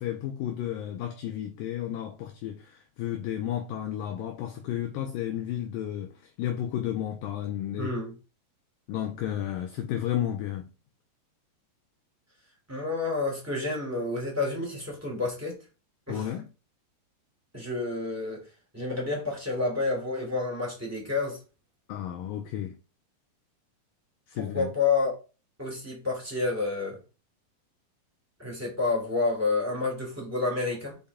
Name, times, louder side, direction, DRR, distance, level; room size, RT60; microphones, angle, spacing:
voice 1, 0.0-7.9 8.9-10.7 16.1-16.5 21.9-22.8 24.3-24.7, left 11 dB, 90° left, 1.9 m, -32 dB
voice 2, 7.8-8.1 12.7-15.6 16.1-16.3 17.5-18.4 18.7-21.4 24.4-25.2 25.6-27.0 28.4-31.0, left 3 dB, 5° right, 1.9 m, -29 dB
5.5 x 5.4 x 3.6 m
omnidirectional pair, 4.9 m